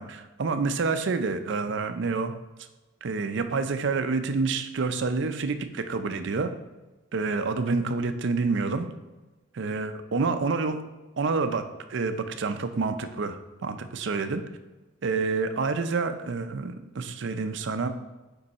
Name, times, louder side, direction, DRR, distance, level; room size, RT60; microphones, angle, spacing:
voice 1, 0.0-2.3 3.0-6.5 7.1-8.9 9.5-10.8 11.2-11.6 11.9-14.4 15.0-17.9, right 4 dB, 65° right, 9 dB, 0.5 m, -28 dB
5.4 x 4.6 x 4.1 m, 1.1 s
head